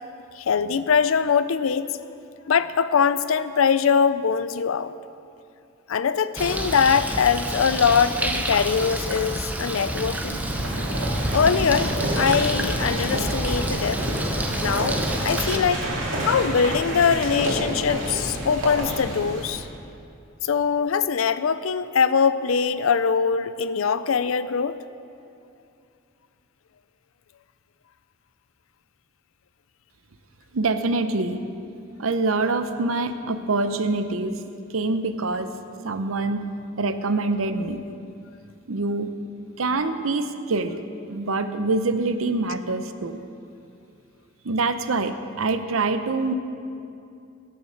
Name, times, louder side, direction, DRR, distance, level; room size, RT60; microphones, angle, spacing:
voice 1, 0.4-1.9 2.5-4.9 5.9-10.4 11.3-11.9 12.2-14.0 14.6-15.8 16.3-19.7 20.4-24.8, left 6 dB, 90° left, 14 dB, 0.5 m, -22 dB
Bird, 6.4-15.6, right 1 dB, 10° right, 0.8 m, -28 dB
sound 1, 9.7-19.7, right 1 dB, 70° right, 2.7 m, -29 dB
voice 2, 30.5-31.4 32.0-34.4 34.7-35.5 35.8-36.5 36.8-37.8 38.7-39.1 39.6-40.8 41.1-43.2 44.4-46.3, right 3 dB, 90° right, 9 dB, 0.7 m, -25 dB
16.5 x 6.6 x 6.6 m, 2.6 s
head